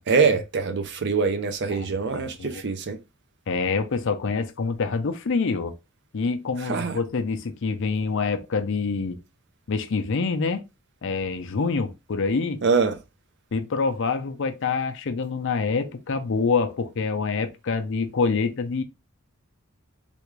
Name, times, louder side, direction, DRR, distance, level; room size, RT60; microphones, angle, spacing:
voice 1, 0.1-3.0 6.7-7.0 12.6-12.9, right 5 dB, 50° right, 0.5 m, -23 dB
voice 2, 1.7-2.6 3.5-5.7 6.1-9.2 9.7-10.6 11.0-12.6 13.5-18.8, left 4 dB, 60° left, 0.5 m, -26 dB
3.4 x 2.4 x 3.1 m
head